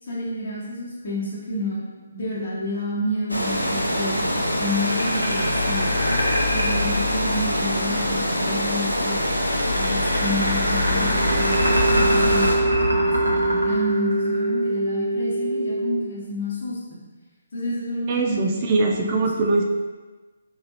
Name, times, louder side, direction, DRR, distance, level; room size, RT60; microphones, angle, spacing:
voice 1, 0.0-1.8 2.1-6.1 6.5-9.2 9.7-17.0 17.5-19.3, left 1 dB, 45° left, -7 dB, 1.0 m, -30 dB
Water, 3.3-12.6, left 1 dB, 85° left, 0.7 m, -24 dB
sound 1, 4.7-7.7 9.2-14.7, equal, 85° right, 1.2 m, -26 dB
sound 2, 11.0-16.0, right 2 dB, 5° left, 0.9 m, -24 dB
voice 2, 18.1-19.6, right 3 dB, 30° right, 1 dB, 0.4 m, -22 dB
4.3 x 3.4 x 3.0 m, 1.3 s
figure-of-eight pair, 140°, 0 cm